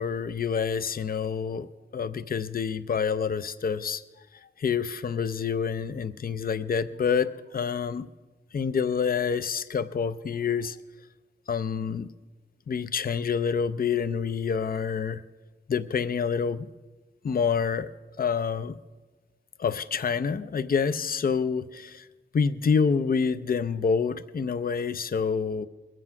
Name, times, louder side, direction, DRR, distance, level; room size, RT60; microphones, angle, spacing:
voice 1, 0.0-1.7 1.9-4.0 4.6-8.1 8.5-10.8 11.5-12.1 12.7-15.2 15.7-16.7 17.2-17.9 18.2-18.8 19.6-22.1 22.3-25.7, left 6 dB, 50° left, 13 dB, 0.5 m, -27 dB
21.0 x 7.7 x 6.0 m, 1.2 s
wide cardioid pair, 100°, 19 cm